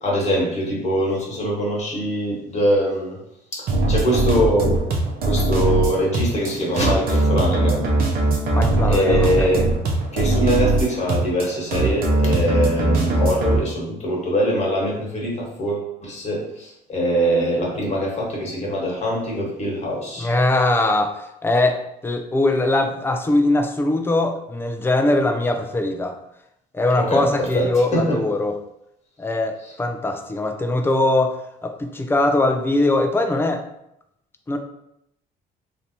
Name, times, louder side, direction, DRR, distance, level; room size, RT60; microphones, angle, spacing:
voice 1, 0.0-3.2 3.5-4.8 5.2-7.9 8.9-9.7 10.1-20.3 27.0-27.2 27.5-27.6 27.9-28.2, equal, 40° left, -3 dB, 1.3 m, -23 dB
sound 1, 3.7-13.6, right 2 dB, 60° right, 0.7 m, -21 dB
voice 2, 8.5-9.5 20.2-26.2 26.7-28.5 29.2-33.6 34.5-34.6, left 2 dB, 15° left, 5 dB, 0.4 m, -21 dB
3.2 x 2.6 x 2.8 m, 0.79 s
cardioid pair, 110°, 17 cm